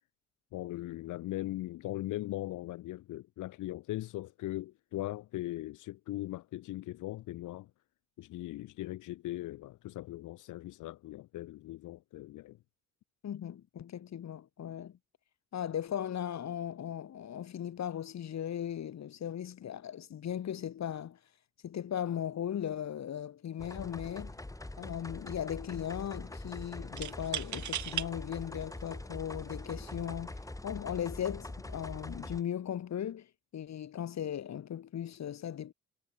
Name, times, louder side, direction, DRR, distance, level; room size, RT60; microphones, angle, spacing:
voice 1, 0.5-7.7 8.2-12.6, left 16 dB, 90° left, 2.1 m, -39 dB
voice 2, 13.2-15.0 15.5-21.2 21.6-24.4 24.8-33.3 33.5-35.7, left 9 dB, 60° left, 5.7 m, -37 dB
sound 1, 23.6-32.4, left 2 dB, 10° left, 4.6 m, -43 dB
sound 2, 23.8-24.1 24.4-25.0 27.0-28.1 28.8-28.9 29.8-30.1, right 11 dB, 70° right, 5.3 m, -38 dB
cardioid pair, 90°, 30 cm